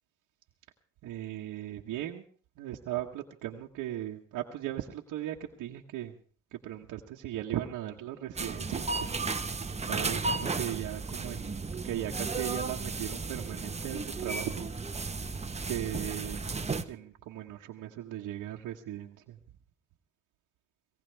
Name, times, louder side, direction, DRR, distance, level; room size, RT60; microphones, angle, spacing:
voice 1, 1.0-2.2 2.6-6.2 6.5-9.0 9.9-14.7 15.7-16.6 16.8-19.4, right 12 dB, 90° right, -1 dB, 1.4 m, -38 dB
sound 1, 8.3-16.8, right 4 dB, 20° right, 1.2 m, -34 dB
22.0 x 18.0 x 3.5 m, 0.43 s
cardioid pair, 90°, 30 cm